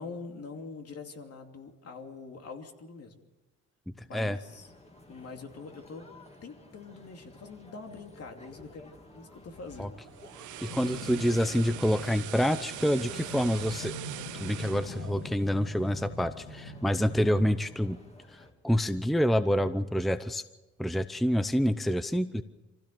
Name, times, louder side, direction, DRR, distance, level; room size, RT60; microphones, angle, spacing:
voice 1, 0.0-3.2 4.0-4.7 5.1-6.1 6.4-10.0, left 4 dB, 55° left, 4 dB, 2.8 m, -44 dB
sound 1, 4.4-18.5, left 1 dB, 20° left, 2.8 m, -53 dB
sound 2, 9.9-16.1 16.5-16.7, right 14 dB, 80° right, 0.8 m, -42 dB
voice 2, 10.6-13.9 14.4-18.0 18.3-20.4 20.8-22.4, equal, ahead, 12 dB, 0.7 m, -27 dB
sound 3, 10.7-17.5, left 2 dB, 85° left, 2.9 m, -43 dB
25.0 x 16.0 x 6.8 m, 1.1 s
cardioid pair, 90°, 30 cm